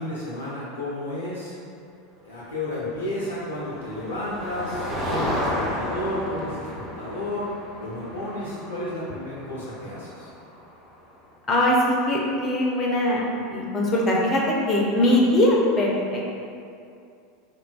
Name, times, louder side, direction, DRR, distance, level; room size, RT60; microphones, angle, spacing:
voice 1, 0.0-1.5 2.2-7.5 7.8-10.3, left 1 dB, 75° left, -8 dB, 0.5 m, -32 dB
Motor vehicle (road), 3.1-10.9, equal, 15° right, 0.6 m, -33 dB
voice 2, 11.5-13.2 13.5-16.4, left 1 dB, 25° left, -3 dB, 0.5 m, -21 dB
3.6 x 2.2 x 2.3 m, 2.5 s
figure-of-eight pair, 80°, 0 cm